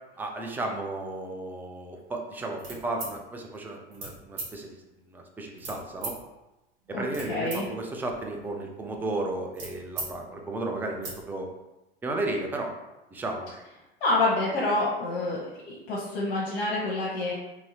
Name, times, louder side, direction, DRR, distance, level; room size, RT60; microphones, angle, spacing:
voice 1, 0.2-4.8 5.1-6.2 6.9-11.5 12.0-12.7 13.1-13.5, right 2 dB, 5° right, 2 dB, 0.3 m, -34 dB
sound 1, 2.6-3.1 3.9-4.1 4.4-4.5 5.6-6.2 6.8-7.6 7.9-10.1 10.4-10.5 10.8-11.2, right 2 dB, 60° right, 1.2 m, -38 dB
voice 2, 6.9-7.7 14.0-17.3, left 2 dB, 55° left, -5 dB, 0.7 m, -27 dB
2.8 x 2.6 x 2.8 m, 0.99 s
figure-of-eight pair, 80°, 31 cm